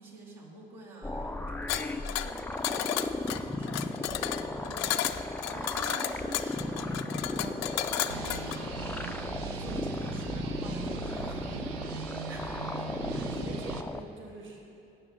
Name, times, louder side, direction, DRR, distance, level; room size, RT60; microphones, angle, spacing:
voice 1, 0.0-12.0 12.3-12.5, right 2 dB, 75° right, -3 dB, 1.8 m, -47 dB
sound 1, 1.0-14.0, left 2 dB, 5° left, 0.4 m, -36 dB
sound 2, 1.7-8.6, left 13 dB, 65° left, 0.5 m, -33 dB
sound 3, 8.1-13.8, right 6 dB, 90° right, 0.6 m, -39 dB
voice 2, 13.1-14.6, right 2 dB, 45° right, 1 dB, 1.5 m, -46 dB
9.8 x 5.5 x 6.9 m, 2.8 s
hypercardioid pair, 55°, 29 cm